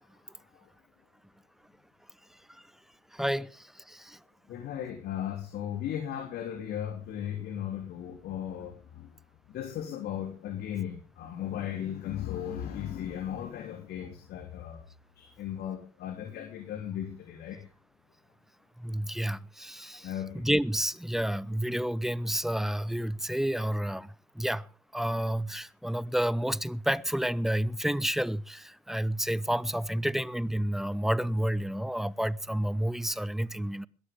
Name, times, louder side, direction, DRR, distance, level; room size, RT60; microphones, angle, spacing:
voice 1, 3.1-4.2 18.8-24.7 24.9-33.9, equal, ahead, 0.8 m, -30 dB
voice 2, 4.5-9.1 9.5-14.8 15.2-17.6 20.0-20.4, left 10 dB, 60° left, 3.2 m, -36 dB
21.5 x 13.5 x 3.5 m
hypercardioid pair, 60°, 19 cm